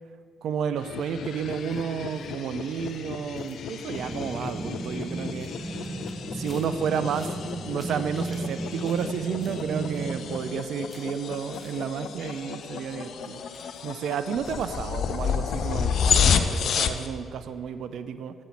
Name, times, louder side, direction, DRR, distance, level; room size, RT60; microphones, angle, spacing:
voice 1, 0.4-5.5 6.3-7.3 7.6-13.4 13.8-18.3, right 7 dB, 65° right, 11 dB, 0.3 m, -31 dB
sound 1, 0.8-17.1, left 7 dB, 60° left, 0.4 m, -31 dB
sound 2, 1.6-12.5 12.7-14.8 15.1-15.3 15.5-15.6, left 1 dB, 20° left, 1.2 m, -56 dB
sound 3, 3.9-10.7, right 2 dB, 15° right, 1.1 m, -35 dB
7.2 x 5.3 x 5.7 m, 2.4 s
hypercardioid pair, 40°, 0 cm